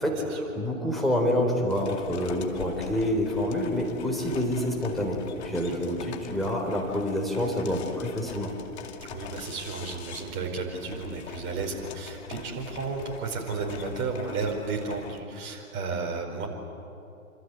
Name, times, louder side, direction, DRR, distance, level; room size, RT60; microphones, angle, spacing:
voice 1, 0.0-8.5, left 1 dB, ahead, -1 dB, 3.8 m, -27 dB
sound 1, 1.7-15.2, left 7 dB, 50° left, 2.4 m, -43 dB
voice 2, 5.6-6.0 9.1-16.5, right 4 dB, 25° right, 1 dB, 5.1 m, -33 dB
27.0 x 26.5 x 8.2 m, 2.7 s
figure-of-eight pair, 120°, 43 cm